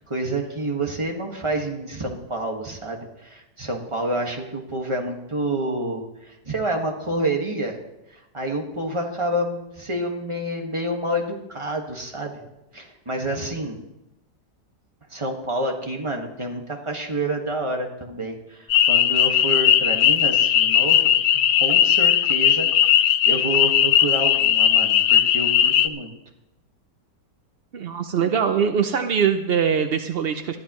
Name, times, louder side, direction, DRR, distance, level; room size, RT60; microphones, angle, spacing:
voice 1, 0.0-7.8 8.1-12.4 12.7-13.8 15.1-22.7 22.9-26.1, right 1 dB, 20° right, 1 dB, 1.7 m, -28 dB
sound 1, 18.7-25.9, left 10 dB, 75° left, 1.2 m, -18 dB
voice 2, 27.7-30.6, right 7 dB, 65° right, 8 dB, 0.6 m, -22 dB
20.5 x 12.5 x 3.1 m, 0.92 s
omnidirectional pair, 1.8 m